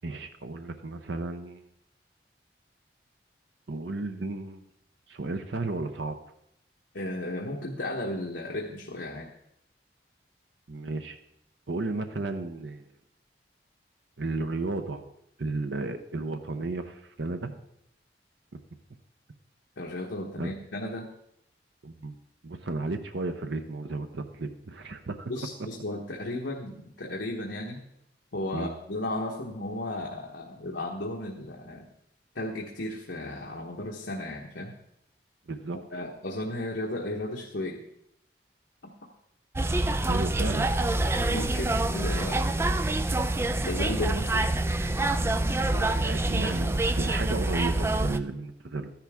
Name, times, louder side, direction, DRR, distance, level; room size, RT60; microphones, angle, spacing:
voice 1, 0.0-1.7 3.7-4.6 5.1-6.2 10.7-11.2 11.7-12.8 14.2-15.0 15.4-17.5 20.4-20.5 21.8-22.1 22.4-25.3 28.5-28.7 35.5-36.0 40.1-40.7 45.7-48.9, right 3 dB, 85° right, 7 dB, 0.8 m, -33 dB
voice 2, 6.9-9.3 19.8-21.1 25.3-27.8 28.3-31.9 32.3-34.8 35.9-37.8 38.8-38.9 41.3-42.5 43.6-44.6, left 1 dB, 85° left, 0 dB, 1.2 m, -34 dB
sound 1, 39.5-48.2, right 2 dB, 15° right, 0.4 m, -26 dB
13.0 x 10.5 x 3.6 m, 0.76 s
head